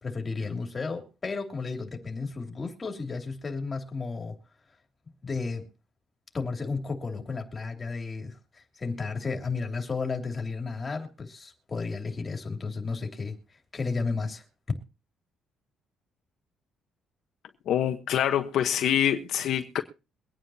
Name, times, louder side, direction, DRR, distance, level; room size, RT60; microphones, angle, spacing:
voice 1, 0.0-4.4 5.2-5.7 6.3-14.4, left 4 dB, 25° left, 2.9 m, -33 dB
voice 2, 17.7-19.8, left 10 dB, 65° left, 1.1 m, -25 dB
23.5 x 9.3 x 2.8 m
cardioid pair, 140°, 0 cm